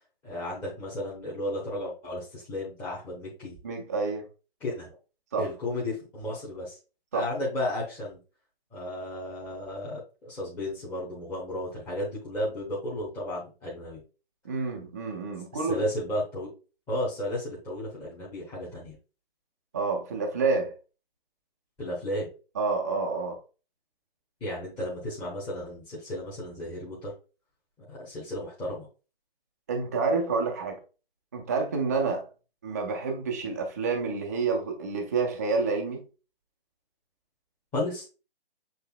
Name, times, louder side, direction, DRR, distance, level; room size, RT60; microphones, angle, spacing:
voice 1, 0.2-3.6 4.6-5.0 5.4-6.8 7.1-8.2 8.7-14.0 15.5-16.5 16.9-18.9 21.8-22.3 24.4-27.1 27.9-28.9 37.7-38.1, left 1 dB, 10° left, 0.9 m, -33 dB
voice 2, 3.6-4.2 5.3-5.5 7.1-7.3 14.4-15.8 19.7-20.7 22.6-23.4 29.7-30.8 31.3-32.3 32.6-36.0, right 4 dB, 15° right, 0.4 m, -28 dB
6.8 x 3.2 x 2.2 m
figure-of-eight pair, 140°, 30 cm